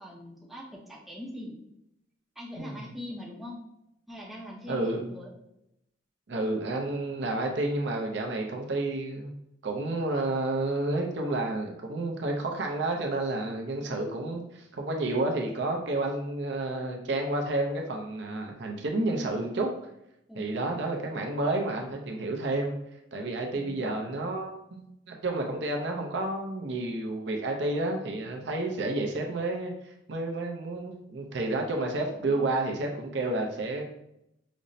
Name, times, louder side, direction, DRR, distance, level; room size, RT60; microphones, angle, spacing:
voice 1, 0.0-1.6 2.4-3.6 4.1-5.3 20.3-20.8 32.1-32.8, left 1 dB, ahead, -4 dB, 0.5 m, -42 dB
voice 2, 4.7-5.1 6.3-9.3 9.6-19.7 20.4-22.7 23.1-33.9, right 2 dB, 65° right, 2 dB, 0.5 m, -30 dB
5.1 x 2.0 x 2.6 m, 0.83 s
head